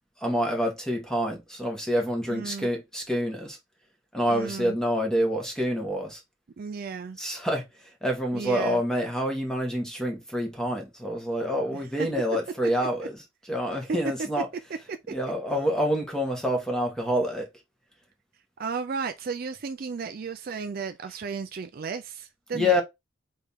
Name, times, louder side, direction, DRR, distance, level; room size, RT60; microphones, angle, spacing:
voice 1, 0.2-3.6 4.1-6.2 7.2-7.6 8.0-13.1 13.5-14.5 15.1-17.5 22.5-22.8, equal, 5° left, 1.3 m, -27 dB
voice 2, 2.3-2.7 4.3-4.8 6.6-7.2 8.3-8.8 11.7-12.1 13.9-14.0 14.9-15.1 18.6-22.8, right 5 dB, 45° right, 0.4 m, -34 dB
4.2 x 3.5 x 3.5 m
head